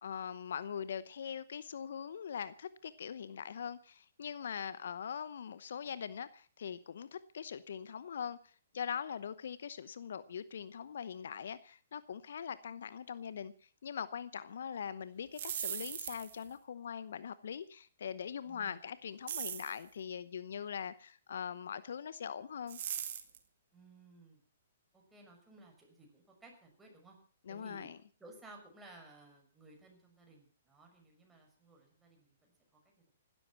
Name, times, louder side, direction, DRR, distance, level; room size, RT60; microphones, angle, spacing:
voice 1, 0.0-13.5 13.8-22.8 27.5-28.0, left 7 dB, 65° left, 0.9 m, -42 dB
sound 1, 15.2-16.5 19.3-19.8 22.7-23.4, right 9 dB, 55° right, 2.1 m, -39 dB
voice 2, 18.4-18.8 23.7-24.4 24.9-27.2 27.5-27.9 28.2-32.5, right 2 dB, 10° right, 6.4 m, -57 dB
16.0 x 12.5 x 5.9 m
figure-of-eight pair, 120°, 0 cm